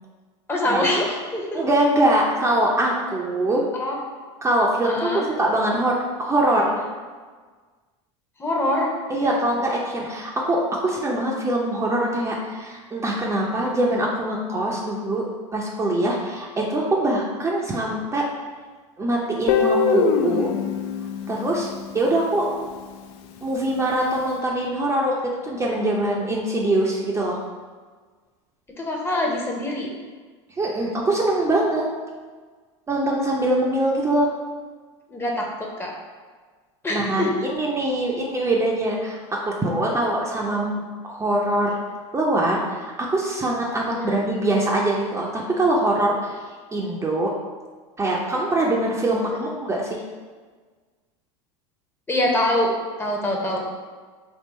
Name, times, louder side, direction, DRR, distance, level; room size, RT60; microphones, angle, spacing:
voice 1, 0.5-1.6 3.8-4.0 4.8-5.3 8.4-8.9 28.8-29.9 35.1-35.9 36.8-37.3 43.9-44.2 49.3-49.5 52.1-53.6, left 1 dB, 15° left, -1 dB, 0.8 m, -24 dB
voice 2, 1.5-3.6 4.4-5.1 5.4-6.8 9.1-15.2 15.5-18.2 19.0-20.5 21.3-21.7 21.9-22.5 23.4-27.4 30.6-31.8 32.9-34.3 36.9-39.2 39.4-41.8 42.1-46.4 46.7-47.3 48.0-50.0, right 1 dB, 20° right, -2 dB, 0.5 m, -23 dB
Guitar, 19.5-22.4, left 5 dB, 65° left, 0.4 m, -23 dB
3.7 x 2.4 x 4.0 m, 1.5 s
supercardioid pair, 100°, 15 cm